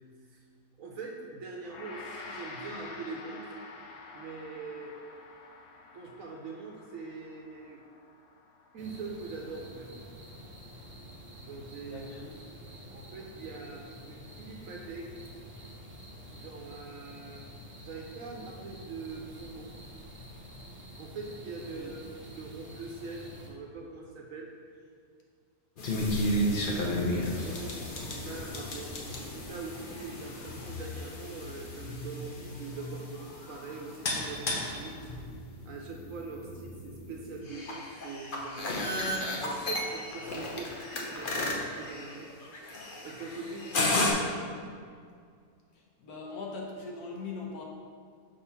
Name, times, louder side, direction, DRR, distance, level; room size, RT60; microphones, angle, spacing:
voice 1, 0.8-3.6 4.1-5.0 5.9-7.8 8.7-9.9 11.4-12.1 12.9-15.2 16.3-17.4 17.8-19.8 21.0-22.0 22.3-24.5 26.7-27.8 28.0-35.0 35.6-38.9 39.4-42.3 43.0-43.9, right 4 dB, 65° right, 0 dB, 0.9 m, -42 dB
Gong, 1.6-11.0, left 3 dB, 90° left, 0.5 m, -48 dB
sound 1, 8.8-23.5, equal, 15° right, 0.5 m, -48 dB
voice 2, 11.9-12.3 21.8-21.9 46.0-47.6, left 3 dB, 65° left, -2 dB, 1.3 m, -40 dB
sound 2, 25.8-44.1, left 1 dB, 50° left, 0.6 m, -34 dB
6.3 x 2.9 x 5.5 m, 2.2 s
omnidirectional pair, 1.8 m